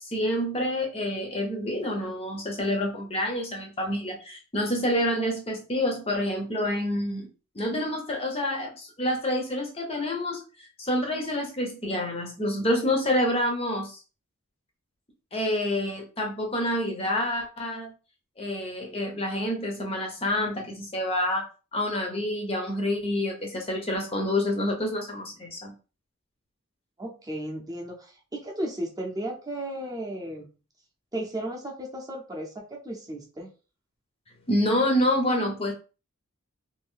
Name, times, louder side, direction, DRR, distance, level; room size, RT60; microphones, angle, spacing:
voice 1, 0.0-7.3 7.5-14.0 15.3-17.9 18.4-21.5 21.7-25.7 34.5-35.7, left 1 dB, 25° left, 2 dB, 0.6 m, -28 dB
voice 2, 27.0-30.5 31.1-33.5, right 1 dB, 15° right, -1 dB, 0.6 m, -35 dB
2.6 x 2.6 x 3.6 m, 0.34 s
head